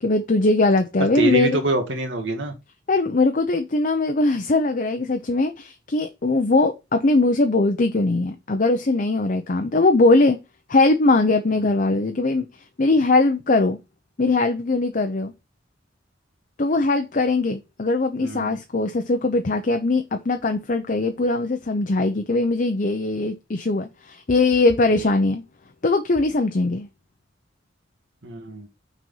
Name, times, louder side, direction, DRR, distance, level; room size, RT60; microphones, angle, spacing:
voice 1, 0.0-1.6 2.9-10.4 10.7-12.5 12.8-13.8 14.2-15.3 16.6-25.4 25.8-26.9, left 2 dB, 45° left, 0.7 m, -20 dB
voice 2, 1.1-2.5 18.2-18.6 24.9-25.0 28.2-28.7, right 1 dB, 85° right, 2.0 m, -25 dB
6.1 x 4.3 x 5.4 m
head